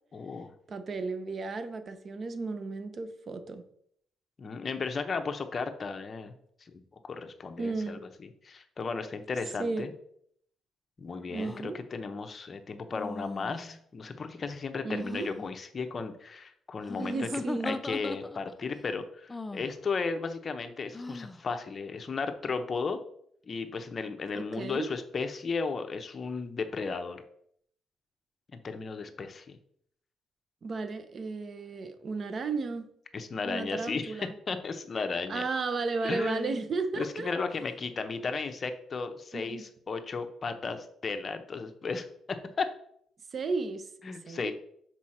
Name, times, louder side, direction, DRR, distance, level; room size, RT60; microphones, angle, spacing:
voice 1, 0.1-0.5 4.4-6.3 6.7-8.0 8.4-9.9 11.0-17.3 17.6-23.0 23.5-27.2 28.5-29.6 33.1-35.4 36.0-36.6 37.0-42.1 42.6-42.7 44.0-44.5, left 4 dB, 40° left, 7 dB, 0.8 m, -35 dB
voice 2, 0.7-3.6 7.6-8.0 9.6-9.9 11.3-11.8 14.8-15.3 17.0-17.8 24.3-24.9 30.6-32.9 33.4-34.3 35.3-37.3 39.3-39.7 43.3-43.9 44.2-44.5, right 3 dB, 45° right, 9 dB, 0.8 m, -34 dB
sound 1, 11.4-11.6 12.9-13.8 14.9-15.5 16.8-18.6 19.3-19.7 20.9-21.4, left 2 dB, 15° left, 0.5 m, -38 dB
6.0 x 4.8 x 4.4 m, 0.68 s
cardioid pair, 90°, 0 cm